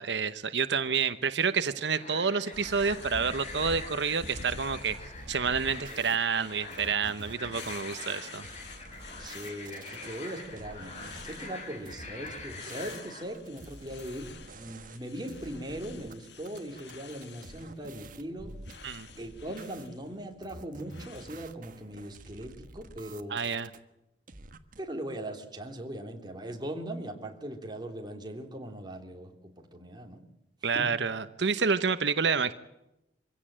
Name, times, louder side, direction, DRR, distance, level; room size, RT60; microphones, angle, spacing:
voice 1, 0.0-5.0 5.3-8.5 18.8-19.1 23.3-23.7 30.6-32.5, right 5 dB, 90° right, 12 dB, 1.0 m, -29 dB
sound 1, 1.9-13.2, left 3 dB, 40° left, 6.0 m, -44 dB
sound 2, 2.5-21.3, left 3 dB, 75° left, 1.9 m, -48 dB
sound 3, 5.1-6.2 6.7-10.1 10.6-11.5 11.8-15.0 15.3-16.1 16.4-19.9 20.4-23.8 24.3-24.8, right 2 dB, 50° right, 1.5 m, -48 dB
voice 2, 9.2-18.6 19.2-23.4 24.8-30.2 30.6-30.9, right 1 dB, 25° right, 3 dB, 3.2 m, -40 dB
24.5 x 16.5 x 8.8 m, 0.89 s
head